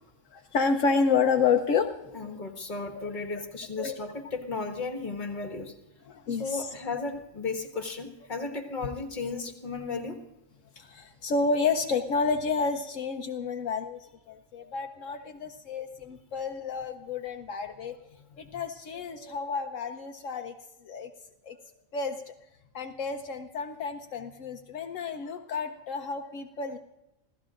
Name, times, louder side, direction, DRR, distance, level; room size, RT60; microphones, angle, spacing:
voice 1, 0.3-2.4 3.0-3.1 3.8-4.0 6.0-6.7 10.8-18.0 18.4-20.5 20.8-21.1 21.4-21.6 21.9-22.3 22.7-26.8, left 5 dB, 75° left, 4 dB, 1.1 m, -30 dB
voice 2, 2.1-5.7 6.4-10.2, left 4 dB, 35° left, 4 dB, 1.8 m, -34 dB
28.0 x 16.0 x 2.5 m, 0.95 s
omnidirectional pair, 1.4 m